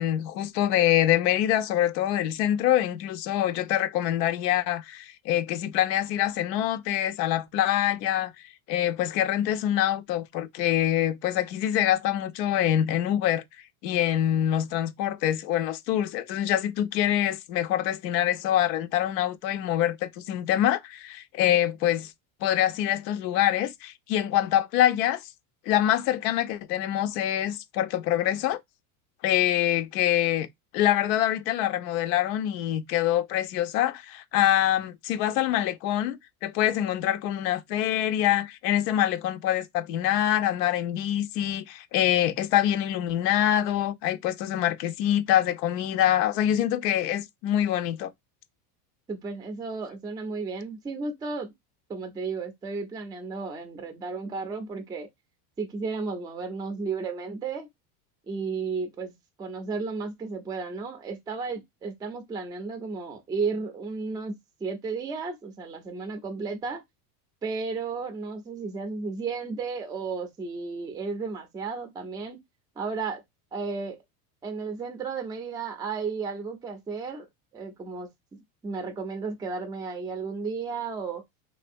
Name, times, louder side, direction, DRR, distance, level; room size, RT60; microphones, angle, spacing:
voice 1, 0.0-8.3 8.7-13.4 13.8-22.1 22.4-25.2 25.7-28.6 29.2-30.5 30.7-48.1, left 12 dB, 80° left, 0.7 m, -25 dB
voice 2, 49.1-51.5 51.9-55.1 55.6-57.7 58.3-64.3 64.6-66.8 67.4-72.4 72.8-73.2 73.5-74.0 74.4-77.3 77.5-78.1 78.6-81.2, right 4 dB, 10° right, 0.4 m, -33 dB
3.3 x 2.7 x 2.6 m
supercardioid pair, 135°, 49 cm